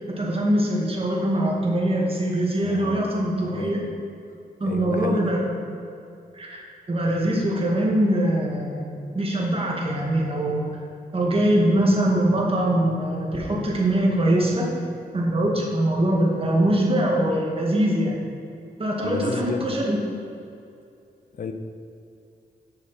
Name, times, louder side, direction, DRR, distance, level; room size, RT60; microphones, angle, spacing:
voice 1, 0.0-3.8 4.6-5.4 6.3-6.6 6.9-8.9 9.1-10.7 11.1-14.7 15.1-18.2 18.8-20.0, right 1 dB, 35° right, -2 dB, 2.0 m, -22 dB
voice 2, 2.6-3.1 3.5-3.7 4.6-5.2 19.0-19.8 21.3-21.5, left 5 dB, 60° left, 7 dB, 0.7 m, -32 dB
8.5 x 6.2 x 4.3 m, 2.6 s
cardioid pair, 70°, 16 cm